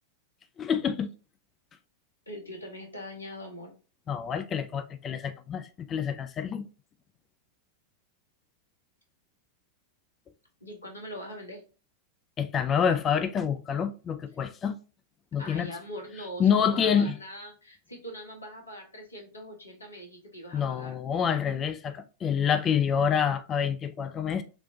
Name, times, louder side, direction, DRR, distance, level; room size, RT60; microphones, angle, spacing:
voice 1, 0.6-1.1 4.1-6.6 12.4-14.7 15.3-15.7 16.4-17.1 20.5-24.4, left 7 dB, 25° left, 0.3 m, -27 dB
voice 2, 2.3-3.7 10.6-11.6 15.4-21.0, equal, 80° left, 1.0 m, -42 dB
3.1 x 3.0 x 2.5 m
figure-of-eight pair, 90°, 0 cm